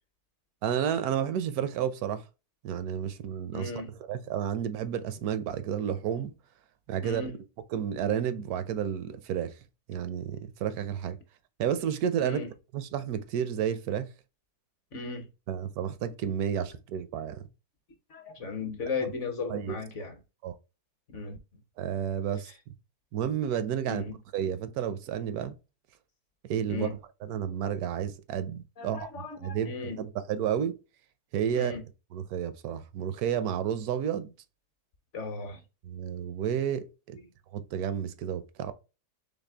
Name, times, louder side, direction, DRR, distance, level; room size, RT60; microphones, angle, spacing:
voice 1, 0.6-2.2 2.6-6.3 6.9-7.2 7.7-9.6 9.9-11.2 11.6-12.4 12.7-14.1 15.5-17.4 19.0-19.1 19.5-19.8 20.4-20.6 21.8-22.5 23.1-24.0 24.3-25.6 26.4-26.9 27.2-30.8 31.3-31.7 32.1-34.3 35.8-37.2 37.5-38.7, right 9 dB, 75° right, 1.0 m, -31 dB
voice 2, 3.5-3.9 7.0-7.3 12.2-12.5 14.9-15.3 18.1-20.2 21.1-21.4 23.8-24.2 26.7-27.0 28.8-30.0 31.5-31.8 35.1-35.6 37.2-37.3, left 4 dB, 55° left, 1.0 m, -36 dB
4.1 x 3.2 x 3.4 m
omnidirectional pair, 1.6 m